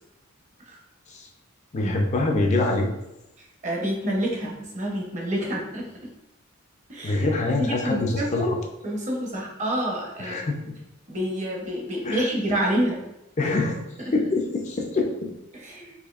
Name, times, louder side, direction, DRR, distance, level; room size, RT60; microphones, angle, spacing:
voice 1, 1.7-2.9 7.0-8.6 10.2-10.7 12.0-12.3 13.4-13.8 14.1-15.3, left 2 dB, 35° left, 1 dB, 0.4 m, -25 dB
voice 2, 3.6-5.9 6.9-7.2 7.6-8.5 8.8-10.5 11.1-13.0 13.4-13.5 15.5-15.9, equal, 35° right, -1 dB, 0.8 m, -28 dB
4.2 x 2.6 x 2.4 m, 0.90 s
head